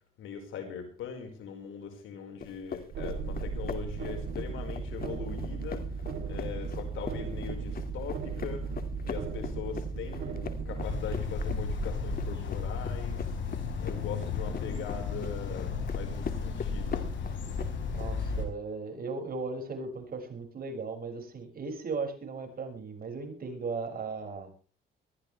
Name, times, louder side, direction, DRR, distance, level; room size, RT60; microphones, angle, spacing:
voice 1, 0.2-6.0 6.2-13.4 13.8-17.1, left 7 dB, 85° left, 4 dB, 5.1 m, -41 dB
sound 1, 2.4-18.1, left 6 dB, 50° left, 2.3 m, -42 dB
sound 2, 2.9-12.3, right 4 dB, 70° right, 3.2 m, -36 dB
sound 3, 10.8-18.4, left 5 dB, 70° left, 5.0 m, -34 dB
voice 2, 17.9-24.5, right 4 dB, 50° right, 3 dB, 6.4 m, -37 dB
21.0 x 14.5 x 3.4 m, 0.38 s
cardioid pair, 90°, 20 cm